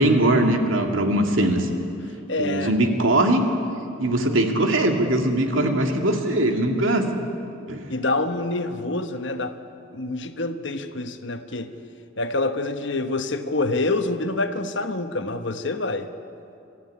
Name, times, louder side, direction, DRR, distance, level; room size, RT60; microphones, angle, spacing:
voice 1, 0.0-1.7 2.4-3.4 4.0-7.1 7.7-7.9, right 1 dB, 85° right, 4 dB, 2.3 m, -21 dB
voice 2, 2.3-2.8 6.7-6.9 7.9-9.5 9.9-11.7 12.2-16.1, left 2 dB, 65° left, 8 dB, 1.2 m, -26 dB
24.5 x 14.0 x 9.8 m, 2.7 s
head